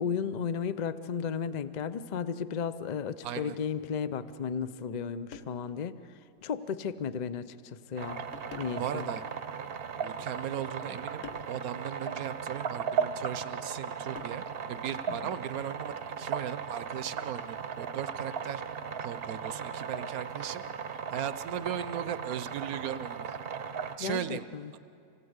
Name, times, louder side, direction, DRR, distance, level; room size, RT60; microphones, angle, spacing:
voice 1, 0.0-6.0 6.4-8.3 8.6-9.1 15.1-15.2 24.0-24.7, left 7 dB, 90° left, 13 dB, 0.3 m, -34 dB
voice 2, 3.2-3.6 8.8-9.2 10.0-14.4 14.7-18.6 19.0-20.6 21.1-23.4 24.0-24.4, right 10 dB, 70° right, 13 dB, 1.1 m, -37 dB
sound 1, 3.6-3.8 4.9-5.0 5.3-5.8 6.4-6.5 7.4-7.6 8.3-9.0 9.9-10.5 11.2-11.6 13.1-13.3 14.2-14.7 16.3-16.6, left 7 dB, 55° left, 1.3 m, -50 dB
sound 2, 8.0-24.0, right 6 dB, 50° right, 0.8 m, -37 dB
26.0 x 18.0 x 8.0 m, 2.6 s
omnidirectional pair, 1.7 m